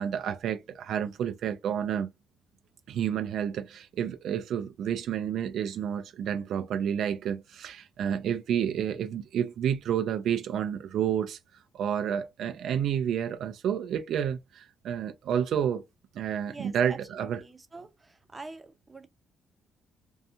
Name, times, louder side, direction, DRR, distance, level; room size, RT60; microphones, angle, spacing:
voice 1, 0.0-2.1 2.9-11.4 11.7-15.8 16.1-17.4, right 9 dB, 75° right, 0.3 m, -30 dB
voice 2, 16.5-19.1, right 3 dB, 20° right, 0.7 m, -46 dB
2.6 x 2.3 x 2.6 m
cardioid pair, 90°, 0 cm